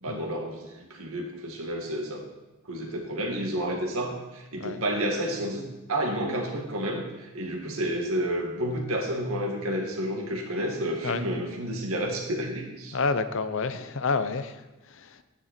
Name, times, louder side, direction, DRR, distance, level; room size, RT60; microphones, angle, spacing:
voice 1, 0.0-2.2 2.7-13.0, right 1 dB, 75° right, 0 dB, 2.1 m, -30 dB
voice 2, 12.9-15.2, left 4 dB, 60° left, 12 dB, 0.6 m, -29 dB
10.5 x 9.9 x 4.3 m, 1.1 s
head